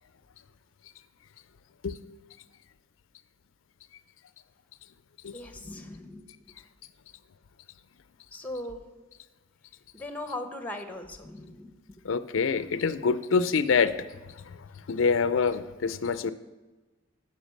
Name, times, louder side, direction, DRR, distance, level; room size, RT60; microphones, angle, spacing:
voice 1, 5.3-6.3 8.3-8.8 9.9-11.8, left 1 dB, 10° left, 7 dB, 0.9 m, -38 dB
voice 2, 12.0-14.1 14.9-16.3, left 5 dB, 80° left, 14 dB, 0.5 m, -25 dB
10.0 x 5.6 x 6.5 m, 1.2 s
head